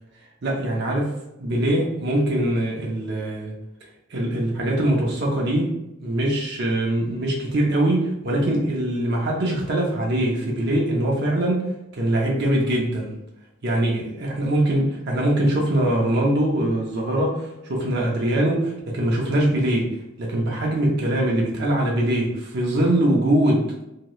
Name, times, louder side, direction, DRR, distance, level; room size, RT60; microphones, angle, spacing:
voice 1, 0.4-3.5 4.1-13.1 13.6-23.7, right 1 dB, 55° right, -2 dB, 0.6 m, -22 dB
2.8 x 2.3 x 3.0 m, 0.88 s
head